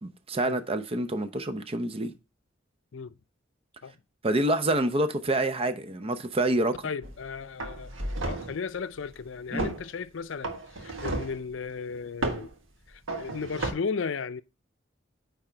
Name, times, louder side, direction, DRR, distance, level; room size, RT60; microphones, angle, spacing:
voice 1, 0.0-2.1 4.2-6.7 9.5-9.7, right 1 dB, 30° right, 0.7 m, -27 dB
voice 2, 6.8-7.9 8.2-12.5 12.9-14.4, left 5 dB, 70° left, 0.5 m, -35 dB
sound 1, 7.0-7.2 7.6-8.6 9.6-9.8 10.4-11.4 12.2-12.5 13.1-13.7, right 2 dB, 90° right, 1.5 m, -32 dB
8.9 x 3.6 x 4.4 m
head